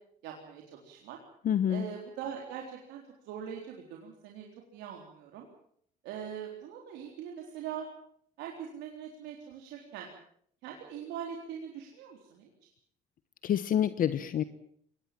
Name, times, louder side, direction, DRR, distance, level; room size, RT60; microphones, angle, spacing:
voice 1, 0.2-1.2 1.7-4.5 4.7-5.5 6.0-7.9 8.4-10.1 10.6-12.5, right 8 dB, 90° right, 1 dB, 3.9 m, -42 dB
voice 2, 1.4-1.8 13.4-14.4, left 10 dB, 55° left, 13 dB, 1.2 m, -27 dB
23.5 x 19.5 x 7.6 m, 0.64 s
cardioid pair, 110°, 17 cm